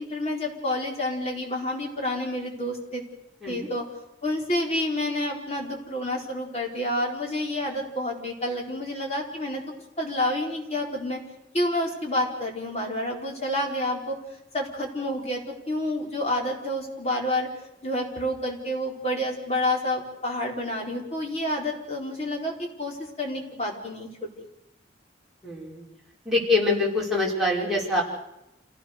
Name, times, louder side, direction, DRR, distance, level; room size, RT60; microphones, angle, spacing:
voice 1, 0.0-3.0 3.5-3.8 4.2-9.6 10.0-11.2 11.5-14.2 14.5-17.5 17.8-24.3, left 1 dB, 35° left, 0 dB, 4.4 m, -29 dB
voice 2, 25.4-25.8 26.3-28.0, left 2 dB, ahead, -5 dB, 5.5 m, -24 dB
28.0 x 17.0 x 6.7 m, 0.89 s
head